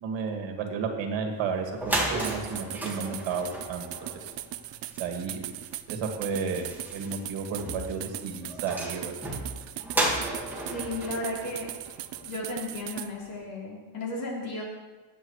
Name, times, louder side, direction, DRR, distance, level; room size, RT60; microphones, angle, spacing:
voice 1, 0.0-3.9 5.0-5.4 5.9-9.1, right 5 dB, 85° right, 3 dB, 2.0 m, -32 dB
sound 1, 1.4-1.5 1.7-12.5, right 1 dB, 5° right, 1.7 m, -34 dB
sound 2, 2.2-13.1, right 14 dB, 70° right, 0.6 m, -39 dB
voice 2, 10.7-11.7 12.2-14.6, left 2 dB, 50° left, -4 dB, 3.6 m, -34 dB
20.0 x 8.5 x 3.2 m, 1.3 s
cardioid pair, 175°, 44 cm